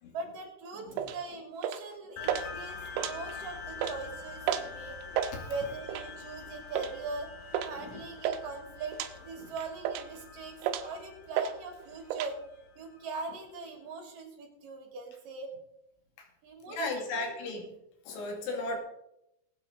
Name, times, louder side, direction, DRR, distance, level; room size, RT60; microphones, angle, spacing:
voice 1, 0.1-5.0 5.5-7.3 7.6-12.4 12.8-15.5 16.4-17.6 18.4-18.7, right 3 dB, 50° right, 1 dB, 4.1 m, -41 dB
sound 1, 1.0-1.2 1.6-1.9 2.2-2.5 2.9-3.4 3.7-4.0 4.5-4.7 5.0-5.3 5.9-6.2 6.7-6.9 7.5-7.7 8.0-8.4 8.9-9.1 9.6-10.2 10.6-11.0 11.4-11.5 11.8-12.3, right 10 dB, 75° right, 2.4 m, -32 dB
sound 2, 2.2-13.0, left 5 dB, 65° left, 1.9 m, -45 dB
voice 2, 16.7-17.7 18.1-18.8, left 2 dB, 80° left, 2 dB, 4.7 m, -36 dB
21.0 x 8.9 x 4.0 m, 0.81 s
omnidirectional pair, 5.3 m